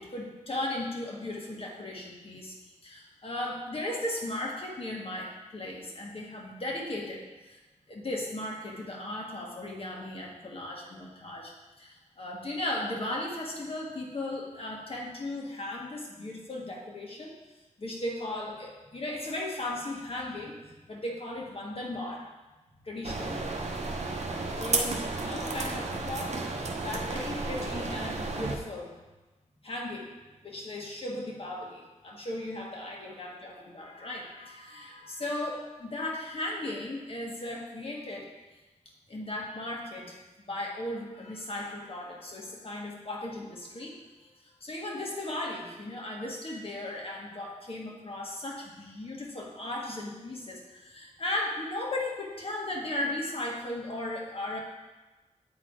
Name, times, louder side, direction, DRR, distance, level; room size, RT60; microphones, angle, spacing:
voice 1, 0.0-7.6 7.9-17.4 17.8-22.3 22.8-23.5 24.6-28.9 29.6-30.1 30.4-38.3 39.1-40.2 40.4-44.3 44.6-54.6, left 1 dB, 45° left, -1 dB, 1.6 m, -36 dB
sound 1, 23.0-28.6, right 3 dB, 60° right, 0.8 m, -32 dB
8.7 x 4.0 x 4.7 m, 1.1 s
cardioid pair, 70°, 13 cm